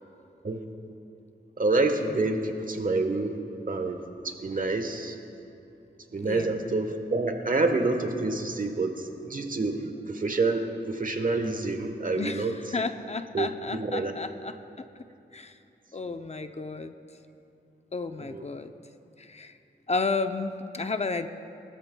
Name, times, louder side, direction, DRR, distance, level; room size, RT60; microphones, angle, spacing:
voice 1, 1.6-3.4 3.7-4.0 4.2-5.1 6.1-12.5 13.3-13.5 13.8-14.1 18.3-18.4, right 3 dB, 50° right, 6 dB, 1.3 m, -27 dB
voice 2, 12.2-14.9 15.3-15.6 15.9-16.9 17.9-18.7 19.2-19.6 19.9-21.3, left 4 dB, 40° left, 8 dB, 0.6 m, -32 dB
22.0 x 13.5 x 2.3 m, 2.7 s
cardioid pair, 60°, 18 cm